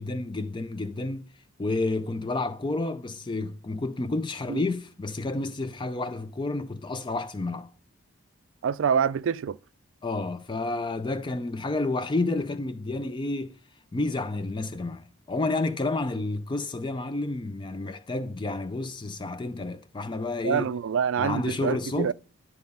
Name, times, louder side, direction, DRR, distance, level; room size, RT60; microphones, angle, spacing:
voice 1, 0.0-7.7 10.0-13.6 13.9-20.7 21.2-22.1, left 2 dB, 20° left, 0.3 m, -30 dB
voice 2, 8.6-9.6 20.4-22.1, right 7 dB, 60° right, 0.3 m, -26 dB
10.5 x 4.2 x 5.4 m
head